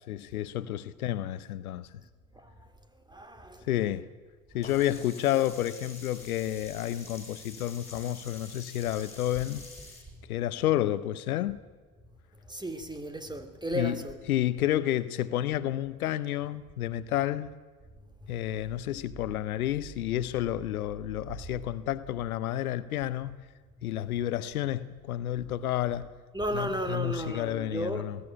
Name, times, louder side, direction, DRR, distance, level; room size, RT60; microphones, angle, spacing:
voice 1, 0.1-1.9 3.7-4.1 4.5-9.6 10.3-11.6 13.7-14.0 14.3-17.5 18.3-23.4 23.8-26.1 26.5-28.2, left 13 dB, 90° left, 0.9 m, -30 dB
voice 2, 3.1-3.7 12.5-14.2 26.3-28.1, equal, 10° right, 2.7 m, -34 dB
Sink (filling or washing), 4.6-10.0, left 2 dB, 15° left, 7.0 m, -47 dB
20.0 x 15.0 x 9.8 m
hypercardioid pair, 70°, 42 cm